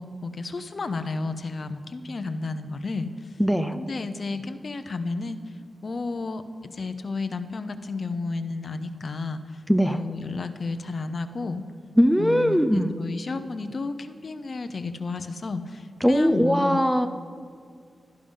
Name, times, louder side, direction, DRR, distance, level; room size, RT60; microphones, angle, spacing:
voice 1, 0.0-3.4 3.7-5.4 5.8-9.6 9.9-11.7 12.2-16.8, left 3 dB, 45° left, 10 dB, 0.8 m, -32 dB
voice 2, 3.4-3.8 9.7-10.0 12.0-12.9 16.0-17.1, equal, ahead, 9 dB, 0.5 m, -20 dB
16.5 x 13.0 x 5.6 m, 2.1 s
wide cardioid pair, 170°, 0 cm